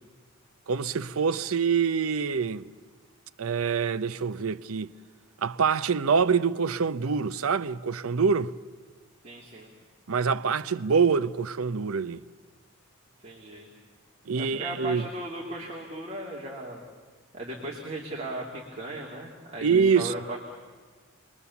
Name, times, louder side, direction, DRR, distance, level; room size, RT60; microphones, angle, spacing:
voice 1, 0.7-2.6 3.4-4.9 5.4-8.5 10.1-12.2 14.3-15.0 19.6-20.1, right 5 dB, 85° right, 0.6 m, -25 dB
voice 2, 9.2-9.7 13.2-13.7 14.4-16.8 17.3-20.4, right 1 dB, 30° right, 2.5 m, -37 dB
29.0 x 21.0 x 7.0 m
head